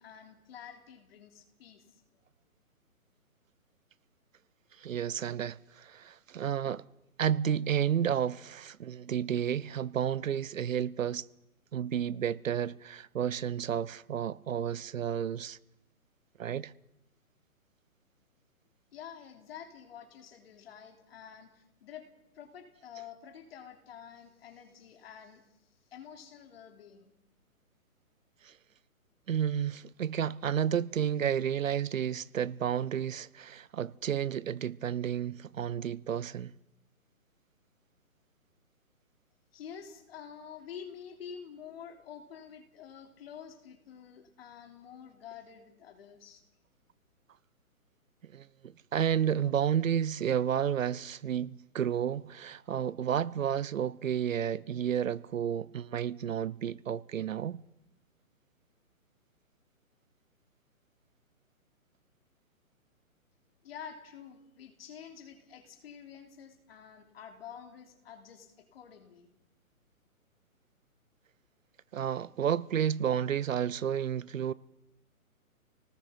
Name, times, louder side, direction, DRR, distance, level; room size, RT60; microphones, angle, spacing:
voice 1, 0.0-2.0 18.9-22.1 22.3-25.5 25.9-27.1 39.5-46.4 63.6-69.3, left 8 dB, 45° left, 3.4 m, -48 dB
voice 2, 4.8-6.8 7.2-11.3 11.7-15.6 16.4-16.7 28.4-28.5 29.3-36.5 48.2-57.6 71.9-74.5, right 9 dB, 65° right, 0.8 m, -31 dB
28.0 x 19.0 x 5.8 m
hypercardioid pair, 155°, 43 cm